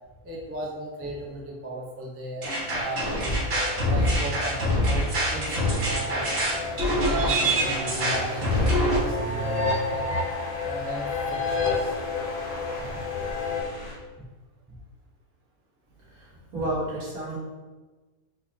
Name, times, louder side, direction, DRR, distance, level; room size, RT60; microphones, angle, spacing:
voice 1, 0.2-3.4 3.9-6.3 6.8-10.1 10.6-11.9 12.9-13.0 16.5-16.6, right 1 dB, 15° right, -3 dB, 0.4 m, -36 dB
sound 1, 2.4-9.0, equal, 55° right, 1.7 m, -24 dB
sound 2, 2.6-13.6, left 3 dB, 60° left, 0.4 m, -32 dB
sound 3, 6.2-13.9, equal, 80° left, 1.6 m, -39 dB
voice 2, 16.1-17.4, right 1 dB, 75° right, -6 dB, 2.0 m, -31 dB
4.5 x 4.1 x 2.8 m, 1.3 s
omnidirectional pair, 1.5 m